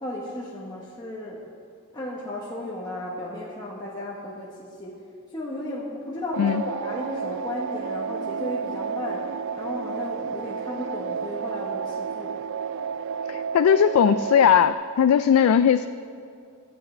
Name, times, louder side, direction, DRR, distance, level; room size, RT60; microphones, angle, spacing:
voice 1, 0.0-1.4 1.9-5.0 5.3-9.3 9.6-12.4, left 1 dB, 20° left, -5 dB, 1.2 m, -34 dB
sound 1, 6.3-14.7, right 6 dB, 60° right, 0.3 m, -31 dB
voice 2, 13.3-15.9, left 8 dB, 90° left, 11 dB, 0.3 m, -19 dB
22.5 x 8.2 x 3.3 m, 2.4 s
head